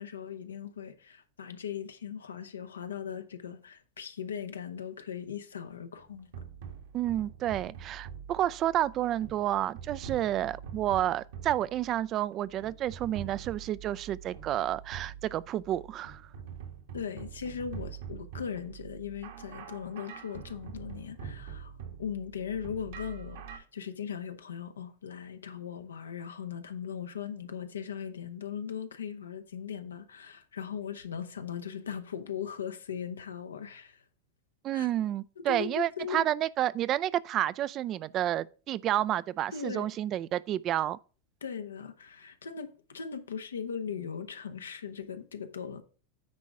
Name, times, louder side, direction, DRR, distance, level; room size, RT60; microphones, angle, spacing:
voice 1, 0.0-6.3 16.9-21.7 22.0-34.0 34.7-34.9 35.5-36.2 39.5-39.9 41.4-45.8, left 7 dB, 90° left, 0.9 m, -39 dB
sound 1, 6.0-23.6, right 7 dB, 70° right, 1.8 m, -45 dB
voice 2, 6.9-16.2 34.6-41.0, right 12 dB, 40° right, 0.4 m, -30 dB
9.6 x 4.1 x 4.8 m
hypercardioid pair, 95°, 0 cm